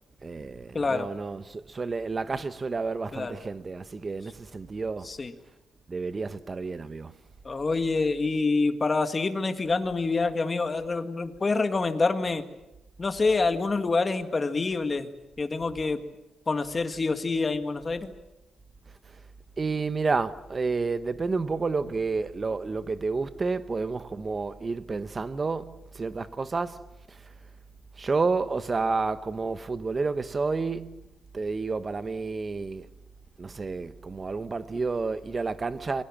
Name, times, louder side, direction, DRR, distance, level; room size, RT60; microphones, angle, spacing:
voice 1, 0.2-5.1 5.9-7.1 19.1-19.2 19.6-27.2 28.0-31.1 31.3-32.9 33.4-36.0, right 4 dB, 25° right, 1.0 m, -30 dB
voice 2, 0.7-1.1 3.1-3.4 5.1-5.3 7.5-12.4 13.0-15.1 15.4-16.0 16.5-18.1, left 3 dB, 25° left, 1.8 m, -26 dB
27.0 x 23.0 x 7.4 m
cardioid pair, 150°, 0 cm